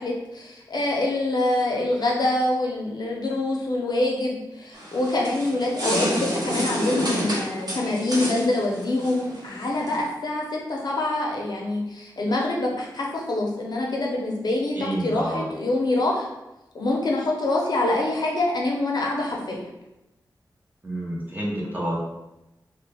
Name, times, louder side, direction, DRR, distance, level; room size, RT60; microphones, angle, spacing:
voice 1, 0.0-14.8 15.0-16.3 16.7-19.6, left 2 dB, 60° left, -2 dB, 0.6 m, -25 dB
sound 1, 4.7-10.0, equal, 55° right, 1.0 m, -29 dB
voice 2, 14.8-15.5 20.8-22.0, right 1 dB, 25° right, -5 dB, 0.9 m, -29 dB
3.1 x 2.2 x 3.3 m, 0.94 s
wide cardioid pair, 100°, 8 cm